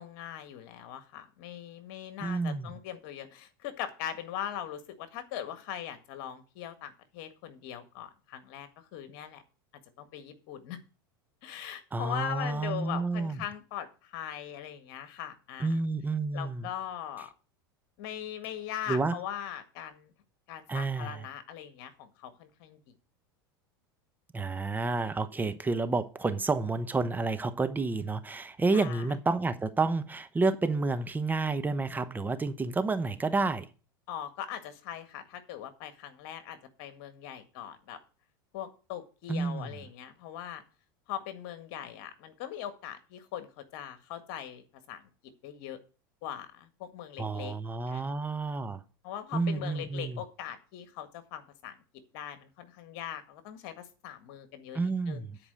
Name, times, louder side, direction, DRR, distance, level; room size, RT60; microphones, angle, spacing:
voice 1, 0.0-9.4 10.0-10.8 11.4-15.8 16.3-17.3 18.0-20.1 20.5-22.8 28.7-29.1 34.1-38.0 38.5-40.6 41.1-45.0 45.4-45.8 46.2-47.5 47.9-48.1 49.0-51.8 52.1-55.3, left 10 dB, 60° left, 1.8 m, -40 dB
voice 2, 2.2-2.7 11.9-13.4 15.6-16.7 18.9-19.2 20.7-21.2 24.3-33.7 39.3-39.7 47.2-48.8 49.3-50.2 54.7-55.4, right 3 dB, 15° right, 0.9 m, -30 dB
9.9 x 4.9 x 7.7 m
hypercardioid pair, 100°, 12 cm